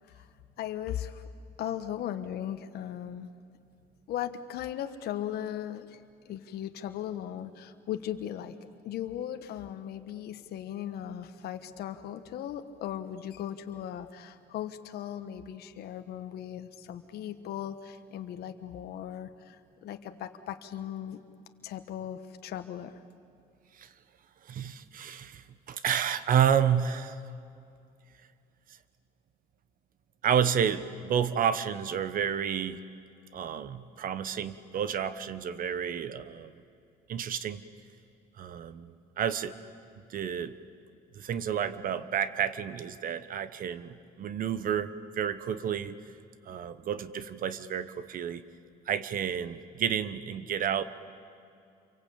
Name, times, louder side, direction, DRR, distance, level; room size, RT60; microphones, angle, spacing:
voice 1, 0.6-1.2 1.6-3.3 4.1-8.6 8.8-21.2 21.6-23.0, left 10 dB, 70° left, 7 dB, 1.3 m, -38 dB
voice 2, 24.4-27.2 30.2-32.8 33.3-36.6 37.1-37.6 38.4-39.5 40.1-40.5 41.1-46.0 46.4-48.4 48.9-50.8, right 8 dB, 55° right, 13 dB, 1.2 m, -30 dB
28.5 x 23.5 x 8.7 m, 2.5 s
cardioid pair, 110°, 17 cm